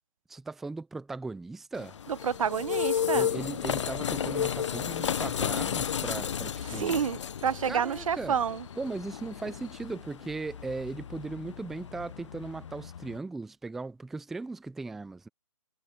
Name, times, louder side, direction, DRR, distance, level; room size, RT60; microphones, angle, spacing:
voice 1, 0.3-2.0 3.1-7.0 7.6-8.4 8.8-15.3, right 3 dB, ahead, 0.4 m, -38 dB
sound 1, 1.7-13.2, left 8 dB, 60° left, 0.7 m, -33 dB
voice 2, 2.1-3.3 6.7-8.6, right 7 dB, 75° right, 0.5 m, -29 dB
sound 2, 2.2-9.9, left 15 dB, 15° left, 5.3 m, -59 dB
hypercardioid pair, 160°, 17 cm